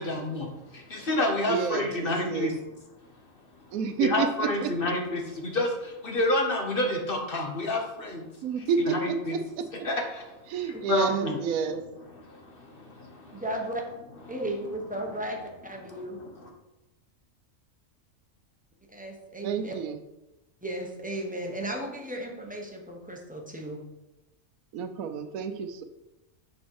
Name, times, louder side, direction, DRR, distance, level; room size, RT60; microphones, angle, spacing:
voice 1, 0.0-2.9 4.0-8.3 8.6-9.4 9.8-11.4 11.6-11.8 12.1-13.4 14.4-14.5 15.0-15.1 15.8-16.5, left 1 dB, 45° left, 2 dB, 1.1 m, -30 dB
voice 2, 1.5-2.6 3.7-4.7 8.4-9.9 10.5-11.8 19.4-20.0 24.7-25.8, right 7 dB, 80° right, 10 dB, 1.1 m, -30 dB
voice 3, 13.3-13.8 14.3-15.4 15.6-16.2 18.9-19.7 20.6-23.8, right 1 dB, 5° right, 0 dB, 1.0 m, -35 dB
6.1 x 5.4 x 4.6 m, 0.99 s
omnidirectional pair, 1.5 m